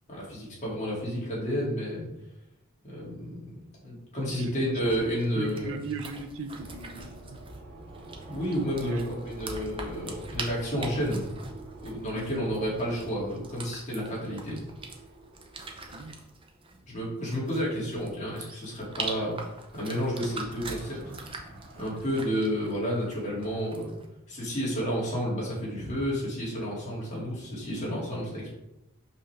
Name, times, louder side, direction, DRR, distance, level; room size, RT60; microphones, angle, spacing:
voice 1, 0.1-2.1 2.8-5.7 8.3-9.0 9.2-11.4 11.8-14.6 16.9-21.0 21.8-24.0 24.3-28.6, equal, 35° left, -6 dB, 2.3 m, -31 dB
voice 2, 4.3-7.4 8.8-9.2 12.1-12.5 15.9-16.2 20.7-21.2, right 3 dB, 60° right, 7 dB, 0.6 m, -39 dB
sound 1, 4.8-24.1, right 3 dB, 25° right, 0.7 m, -43 dB
sound 2, 6.6-16.5 19.7-22.0, right 2 dB, 45° right, 1.0 m, -47 dB
5.5 x 5.3 x 3.4 m, 0.89 s
head